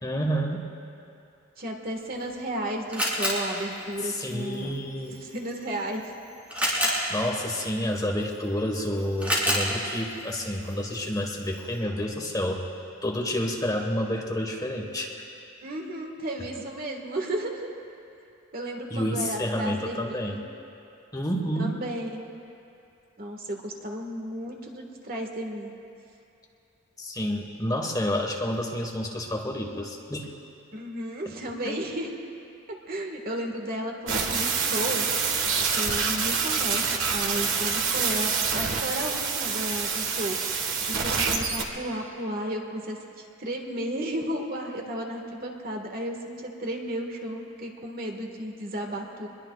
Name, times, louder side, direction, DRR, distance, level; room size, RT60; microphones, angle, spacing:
voice 1, 0.0-0.6 4.0-5.2 7.1-12.6 13.0-15.1 18.9-20.5 21.1-21.7 27.0-30.3 31.2-31.3, equal, 20° left, 1 dB, 1.5 m, -29 dB
voice 2, 1.6-4.8 5.2-6.1 15.6-17.7 18.5-20.4 21.6-22.3 23.2-25.7 30.7-32.1 32.7-35.1 35.7-40.4 40.9-43.0 43.4-49.3, right 1 dB, 50° right, 1 dB, 1.8 m, -33 dB
Camera, 2.0-11.8, equal, 10° right, 4.2 m, -33 dB
sound 1, 34.1-41.6, right 5 dB, 75° right, 1.6 m, -26 dB
26.0 x 21.5 x 2.4 m, 2.7 s
head